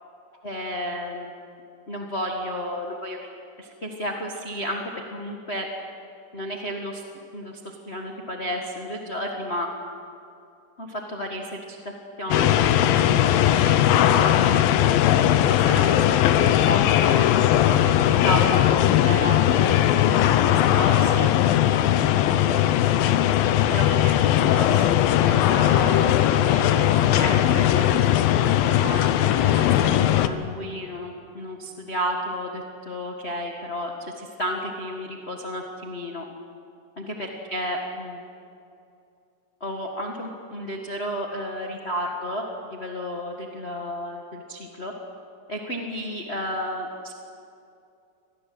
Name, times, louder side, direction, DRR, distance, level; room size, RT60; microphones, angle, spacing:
voice 1, 0.4-1.4 1.9-3.3 3.6-5.7 6.3-7.0 7.3-9.7 10.8-11.8 12.2-14.6 15.3-16.0 16.7-21.3 22.4-23.1 23.4-24.9 25.2-26.1 26.5-36.2 37.0-38.2 39.6-42.4 42.7-44.9 45.5-47.1, equal, 35° left, 0 dB, 1.1 m, -32 dB
sound 1, 12.3-30.3, left 12 dB, 80° left, 2.6 m, -19 dB
25.5 x 19.0 x 7.8 m, 2.6 s
omnidirectional pair, 4.1 m